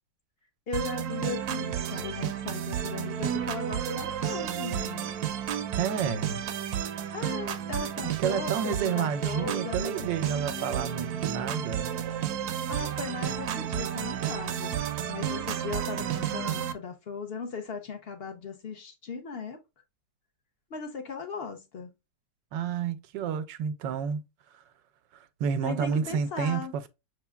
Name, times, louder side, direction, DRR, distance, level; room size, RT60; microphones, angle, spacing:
voice 1, 0.7-5.1 7.1-10.9 12.7-14.8 15.1-19.6 20.7-21.9 25.6-26.7, left 5 dB, 55° left, 0.7 m, -38 dB
sound 1, 0.7-16.7, right 9 dB, 70° right, 1.0 m, -32 dB
voice 2, 5.8-6.4 8.0-12.0 22.5-24.2 25.4-26.9, right 7 dB, 90° right, 1.3 m, -30 dB
6.2 x 3.5 x 2.2 m
omnidirectional pair, 1.9 m